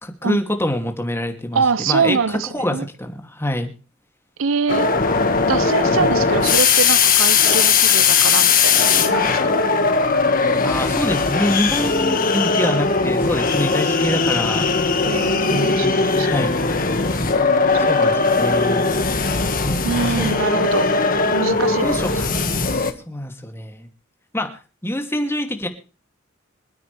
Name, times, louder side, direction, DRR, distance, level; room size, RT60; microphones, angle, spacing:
voice 1, 0.0-2.2 2.5-3.7 6.0-6.1 10.6-14.7 15.5-16.5 17.9-18.9 19.6-19.9 20.2-20.3 21.1-21.3 21.8-23.9 24.3-25.7, left 1 dB, 10° left, 2.6 m, -25 dB
voice 2, 1.5-2.9 4.4-4.9 5.4-9.6 15.0-16.5 17.8-18.2 19.8-21.0 21.3-22.2, right 5 dB, 75° right, 0.6 m, -24 dB
sound 1, 4.7-22.9, left 4 dB, 45° left, 1.9 m, -19 dB
26.5 x 9.5 x 3.4 m
head